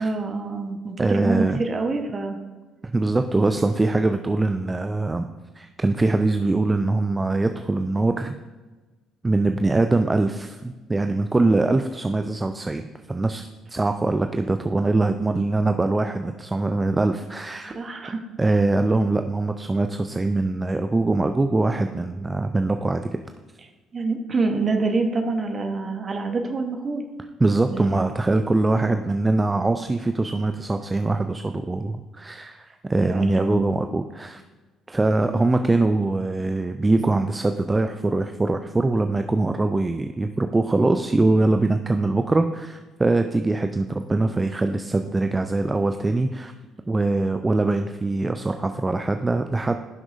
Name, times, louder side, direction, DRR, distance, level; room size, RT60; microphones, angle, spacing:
voice 1, 0.0-2.4 17.7-18.5 23.9-27.0 27.7-28.0 33.0-33.6, right 3 dB, 35° right, 5 dB, 1.1 m, -26 dB
voice 2, 1.0-1.6 2.8-5.3 5.6-8.4 9.2-17.8 18.4-23.2 27.4-34.4 34.9-46.5 46.9-49.8, right 2 dB, 20° right, 7 dB, 0.4 m, -23 dB
16.0 x 6.0 x 2.6 m, 1.3 s
figure-of-eight pair, 50°, 0 cm